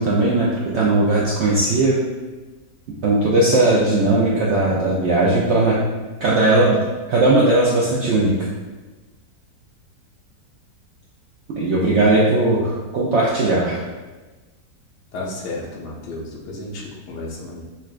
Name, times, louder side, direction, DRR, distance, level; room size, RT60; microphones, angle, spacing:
voice 1, 0.0-2.0 3.0-5.8 6.2-6.8 7.1-8.3 11.6-13.8, right 2 dB, 90° right, -5 dB, 0.6 m, -18 dB
voice 2, 15.1-17.6, left 2 dB, 90° left, -3 dB, 1.2 m, -32 dB
5.5 x 2.2 x 2.4 m, 1.2 s
omnidirectional pair, 1.7 m